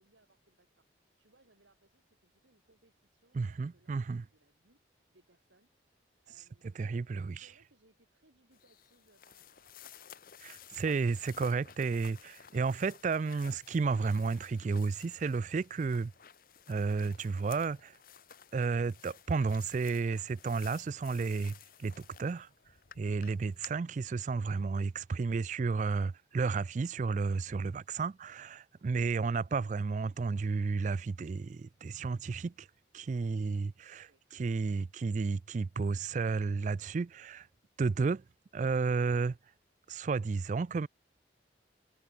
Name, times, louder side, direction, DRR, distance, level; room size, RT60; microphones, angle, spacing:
voice 1, 0.0-4.8 5.1-9.9 33.4-34.6, right 2 dB, 85° right, 3.4 m, -69 dB
voice 2, 3.3-4.2 6.8-7.5 10.4-16.1 16.7-17.9 18.5-21.5 21.8-22.5 23.0-32.7 32.9-37.5 37.8-38.2 38.5-39.4 39.9-40.9, right 4 dB, 40° right, 0.3 m, -32 dB
sound 1, 8.5-23.7, left 7 dB, 50° left, 1.1 m, -54 dB
head